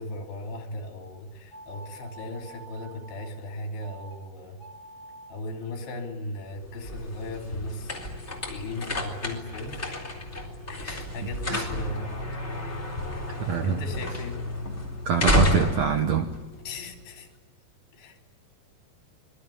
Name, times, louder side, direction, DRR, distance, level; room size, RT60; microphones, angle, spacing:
voice 1, 0.0-4.6 5.3-10.0 10.7-12.1 13.3-14.4 16.6-17.3 17.9-18.3, left 2 dB, 75° left, 5.0 m, -37 dB
sound 1, 1.5-3.3 3.8-4.2 4.5-5.4, right 2 dB, 45° left, 9.5 m, -47 dB
sound 2, 6.5-17.2, left 1 dB, 15° left, 3.7 m, -31 dB
voice 2, 13.4-13.8 15.0-16.3, right 7 dB, 70° right, 1.6 m, -25 dB
25.5 x 22.0 x 9.9 m
omnidirectional pair, 4.8 m